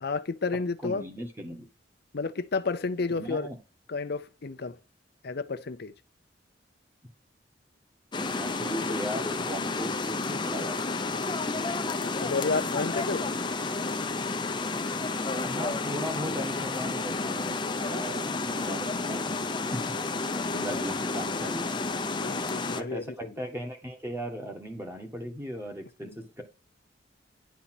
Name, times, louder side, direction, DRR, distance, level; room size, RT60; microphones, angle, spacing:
voice 1, 0.0-1.0 2.1-3.5 3.9-4.8 5.2-5.9 12.0-13.2 22.2-23.3 26.0-26.1, left 4 dB, 60° left, 0.6 m, -31 dB
voice 2, 0.8-1.7 3.1-3.6 8.2-11.1 15.4-19.4 19.7-19.8 20.5-21.8 22.7-26.4, equal, 15° right, 1.7 m, -37 dB
sound 1, 8.1-22.8, left 3 dB, 25° left, 0.7 m, -31 dB
10.0 x 4.2 x 6.0 m
head